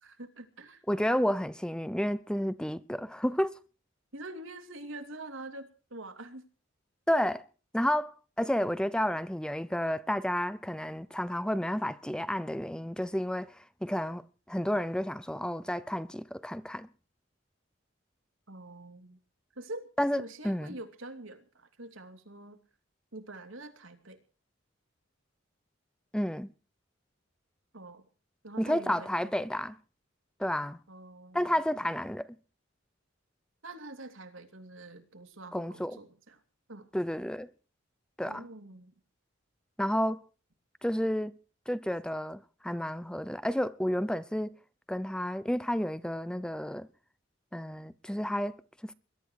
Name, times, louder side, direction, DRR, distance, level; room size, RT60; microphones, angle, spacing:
voice 1, 0.0-0.8 4.1-6.4 18.5-19.2 19.5-22.6 23.1-24.2 27.7-28.0 28.4-29.3 30.9-31.6 33.6-36.4 36.7-36.9 38.2-38.9, right 2 dB, 90° right, 2.9 m, -45 dB
voice 2, 0.9-3.6 7.1-7.4 7.7-13.6 13.8-14.2 14.5-16.9 20.0-20.8 26.1-26.5 28.6-29.8 30.4-30.8 31.3-32.4 35.5-36.0 36.9-37.5 38.2-38.5 39.8-40.2 40.8-41.3 41.7-44.5 44.9-46.9 47.5-48.9, equal, 5° left, 0.7 m, -31 dB
21.5 x 12.0 x 4.7 m
head